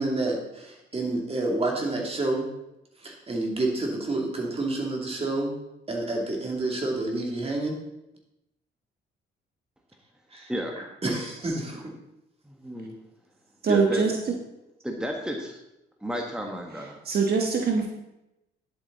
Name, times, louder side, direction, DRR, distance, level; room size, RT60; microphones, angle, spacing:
voice 1, 0.0-2.5 3.0-5.5 5.9-7.8 10.3-10.5 10.8-11.9, right 2 dB, 30° right, 0 dB, 2.9 m, -29 dB
voice 2, 12.4-13.0 13.7-14.0 14.8-15.6 16.0-17.0, equal, 5° right, 1 dB, 1.4 m, -32 dB
voice 3, 13.6-14.1 16.7-17.9, right 5 dB, 50° right, 2 dB, 1.2 m, -23 dB
11.0 x 8.0 x 4.1 m, 0.90 s
cardioid pair, 90°, 20 cm